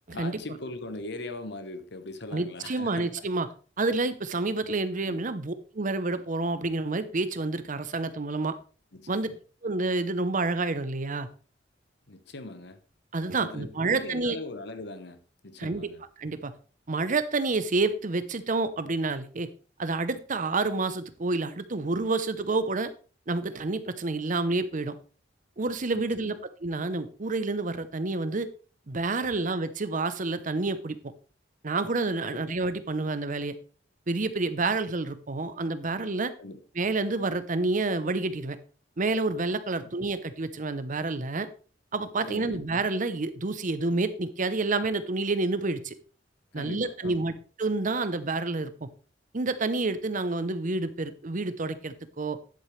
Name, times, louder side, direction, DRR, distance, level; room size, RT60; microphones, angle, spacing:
voice 1, 0.1-3.3 5.1-5.3 8.9-9.4 12.1-12.8 13.4-16.0 25.9-26.4 32.2-32.4 36.4-36.6 39.8-39.9 42.3-42.7 46.5-47.4, left 2 dB, 65° left, 1.1 m, -41 dB
voice 2, 2.3-3.5 3.8-8.5 9.1-9.3 9.6-11.3 13.1-14.4 15.6-15.9 16.2-16.5 16.9-19.5 19.8-22.9 23.3-25.0 25.6-26.4 26.6-28.5 28.9-31.0 31.6-33.5 34.1-36.3 36.8-38.6 39.0-41.5 41.9-46.0 46.5-47.3 47.6-48.9 49.3-52.4, right 3 dB, 45° right, 0.8 m, -29 dB
10.5 x 8.1 x 3.3 m
head